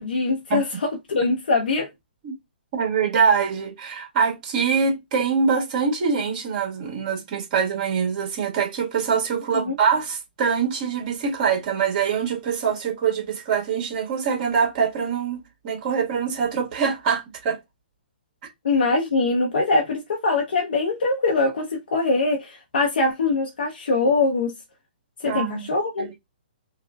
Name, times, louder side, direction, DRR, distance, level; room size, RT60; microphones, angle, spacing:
voice 1, 0.0-1.9 9.5-9.7 18.6-24.5 25.2-26.1, left 3 dB, 70° left, 0.7 m, -23 dB
voice 2, 2.7-17.6 25.2-25.6 26.0-26.2, right 6 dB, 40° right, 1.5 m, -24 dB
3.4 x 2.2 x 2.2 m
hypercardioid pair, 135°, 6 cm